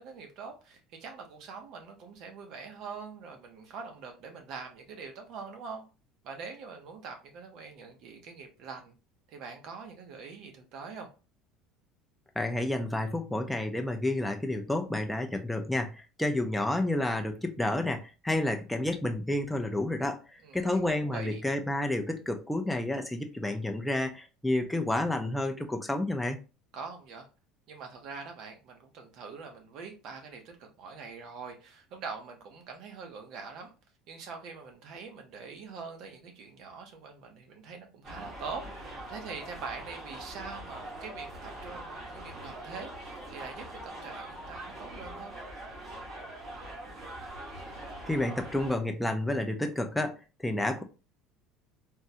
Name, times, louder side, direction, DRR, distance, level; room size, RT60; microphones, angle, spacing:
voice 1, 0.0-5.8 6.2-9.0 9.3-11.1 20.4-21.4 26.7-27.3 27.7-33.7 34.1-45.3, right 5 dB, 50° right, 0.7 m, -44 dB
voice 2, 12.4-26.4 48.1-50.8, left 1 dB, 5° left, 0.4 m, -30 dB
sound 1, 38.0-48.7, right 1 dB, 30° right, 1.1 m, -43 dB
3.5 x 2.1 x 2.7 m
cardioid pair, 160°, 0 cm